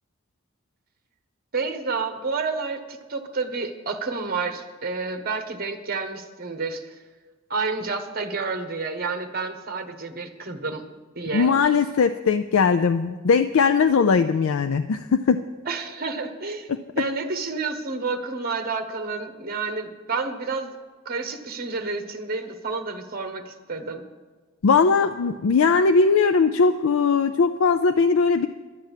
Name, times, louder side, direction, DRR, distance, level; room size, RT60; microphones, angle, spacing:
voice 1, 1.5-6.9 7.5-11.5 15.6-16.7 17.0-20.7 21.0-24.0, right 4 dB, 45° right, 6 dB, 1.2 m, -30 dB
voice 2, 11.3-15.4 24.6-28.5, left 5 dB, 80° left, 9 dB, 0.4 m, -19 dB
12.0 x 9.0 x 7.4 m, 1.4 s
head